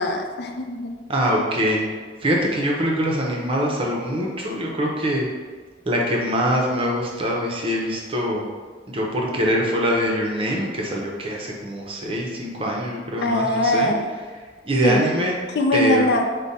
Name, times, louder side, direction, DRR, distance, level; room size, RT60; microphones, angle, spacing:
voice 1, 0.0-1.0 13.2-14.1 14.8-15.1 15.5-16.3, left 1 dB, 60° left, 3 dB, 0.4 m, -22 dB
voice 2, 1.1-1.8 2.2-5.3 5.9-8.4 8.9-13.9 14.7-15.4 15.7-16.1, equal, 30° right, -2 dB, 0.7 m, -23 dB
5.0 x 2.2 x 4.1 m, 1.5 s
head